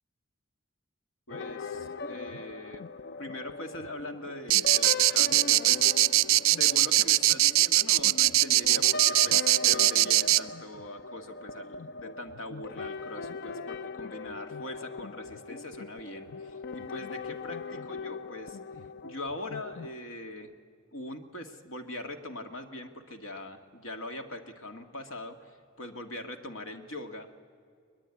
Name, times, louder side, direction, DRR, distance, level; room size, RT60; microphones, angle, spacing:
voice 1, 1.3-2.8 3.2-5.9 6.5-20.5 20.9-27.3, left 1 dB, 75° left, 6 dB, 1.9 m, -42 dB
sound 1, 1.3-19.9, left 3 dB, 55° left, 0.6 m, -40 dB
sound 2, 4.5-10.4, right 16 dB, 85° right, 0.5 m, -21 dB
21.5 x 21.0 x 9.7 m, 2.2 s
head